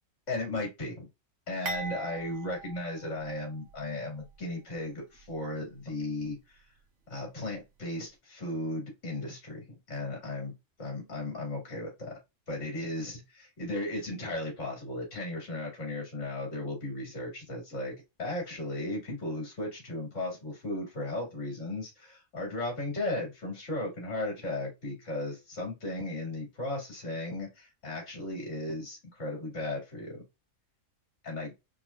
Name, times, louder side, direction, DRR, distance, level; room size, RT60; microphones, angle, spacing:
voice 1, 0.3-1.1 1.5-6.6 7.1-10.5 10.8-12.1 12.5-30.2 31.2-31.5, left 2 dB, 70° left, 0 dB, 2.3 m, -36 dB
sound 1, 1.6-3.8 4.2-4.3 5.2-5.3, right 3 dB, 70° right, 1.4 m, -40 dB
4.2 x 3.0 x 2.4 m, 0.23 s
omnidirectional pair, 1.3 m